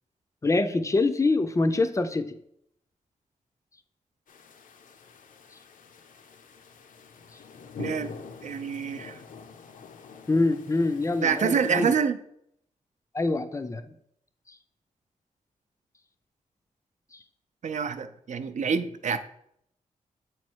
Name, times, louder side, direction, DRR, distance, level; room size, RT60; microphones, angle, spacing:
voice 1, 0.4-2.4 10.3-11.9 13.1-13.9, left 2 dB, 20° left, 0.4 m, -25 dB
sound 1, 4.3-12.0, left 5 dB, 75° left, 0.5 m, -45 dB
voice 2, 7.8-8.1 8.4-9.2 11.2-12.2 17.6-19.2, right 6 dB, 60° right, 0.4 m, -27 dB
7.7 x 3.1 x 4.5 m
wide cardioid pair, 145°, 14 cm